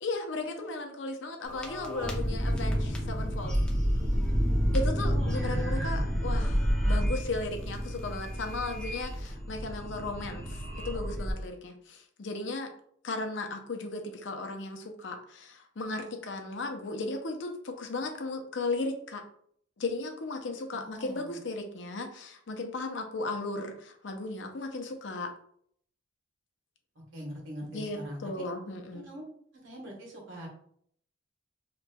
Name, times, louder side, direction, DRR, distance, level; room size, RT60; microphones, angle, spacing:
voice 1, 0.0-3.5 4.7-12.7 13.0-19.2 19.8-25.3 27.6-29.0, left 2 dB, 65° left, 4 dB, 0.6 m, -36 dB
sound 1, 1.4-11.3, equal, 5° left, 0.6 m, -29 dB
voice 2, 4.8-6.0 20.7-21.4 27.1-28.4 28.9-29.2 29.6-30.5, equal, 75° right, -2 dB, 1.4 m, -43 dB
4.1 x 3.0 x 2.3 m, 0.65 s
head